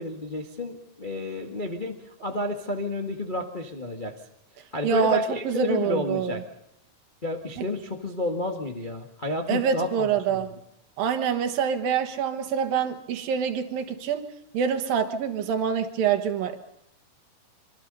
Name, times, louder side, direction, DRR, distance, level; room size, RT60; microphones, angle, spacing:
voice 1, 0.0-4.1 4.7-6.4 7.2-10.5, left 2 dB, 40° left, 2 dB, 0.7 m, -31 dB
voice 2, 4.8-5.2 5.4-6.4 9.5-10.5 11.0-16.6, right 7 dB, 70° right, 6 dB, 3.1 m, -26 dB
25.5 x 25.0 x 5.5 m, 0.77 s
omnidirectional pair, 4.4 m